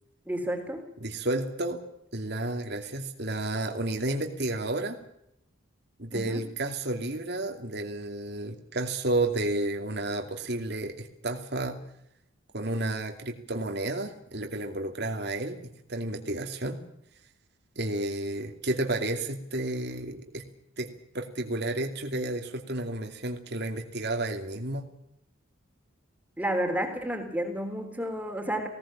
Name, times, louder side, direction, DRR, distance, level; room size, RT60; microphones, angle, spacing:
voice 1, 0.3-0.9 6.1-6.4 26.4-28.7, equal, 10° right, 4 dB, 3.6 m, -31 dB
voice 2, 1.0-1.8 2.1-5.0 6.0-11.8 12.5-16.8 17.8-20.4 20.8-24.9, right 2 dB, 55° right, 4 dB, 2.6 m, -31 dB
19.5 x 18.0 x 8.8 m, 0.76 s
head